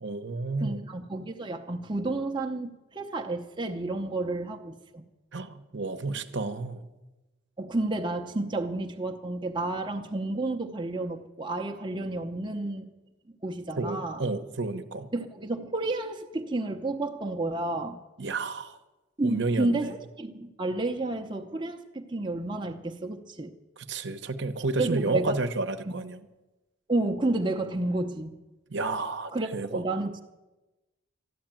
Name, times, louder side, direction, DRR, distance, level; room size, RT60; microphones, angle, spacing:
voice 1, 0.0-0.9 5.3-6.8 13.8-15.1 18.2-18.8 19.2-19.9 23.8-26.2 28.7-29.8, right 3 dB, 60° right, 9 dB, 0.9 m, -31 dB
voice 2, 0.6-5.0 7.6-12.9 13.4-14.2 15.1-18.0 19.2-23.5 24.8-25.4 25.9-26.0 26.9-28.4 29.3-30.2, right 2 dB, 25° right, 2 dB, 0.7 m, -31 dB
13.0 x 11.5 x 8.9 m, 1.1 s
head